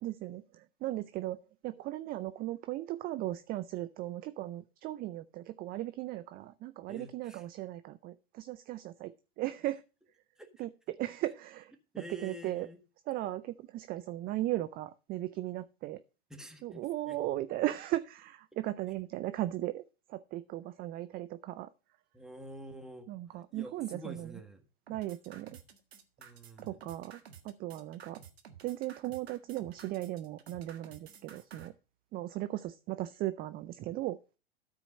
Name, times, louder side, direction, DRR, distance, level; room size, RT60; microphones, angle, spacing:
voice 1, 0.0-1.4 1.6-9.1 9.4-9.8 10.6-11.7 12.2-12.7 13.1-16.0 16.6-19.8 20.1-21.7 23.1-24.3 24.9-25.6 26.6-28.2 28.6-31.7 32.1-34.2, right 15 dB, 30° right, 13 dB, 0.5 m, -37 dB
voice 2, 6.9-7.4 10.4-10.7 11.9-12.8 16.3-17.2 22.1-24.7 26.2-26.8, equal, ahead, 4 dB, 1.7 m, -48 dB
sound 1, 24.9-31.7, right 7 dB, 80° right, 1.6 m, -52 dB
13.0 x 4.5 x 5.3 m, 0.34 s
hypercardioid pair, 100°, 31 cm